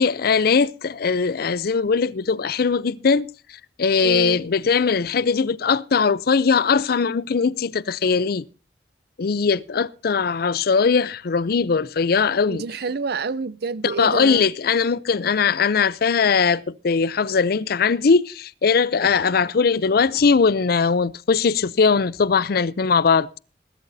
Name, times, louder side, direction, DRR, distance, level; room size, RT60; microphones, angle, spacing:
voice 1, 0.0-3.3 3.8-8.4 9.2-12.6 13.8-23.3, left 5 dB, 60° left, 0.5 m, -20 dB
voice 2, 4.0-4.4 12.5-14.5, right 4 dB, 65° right, 0.6 m, -28 dB
20.5 x 12.0 x 2.7 m
head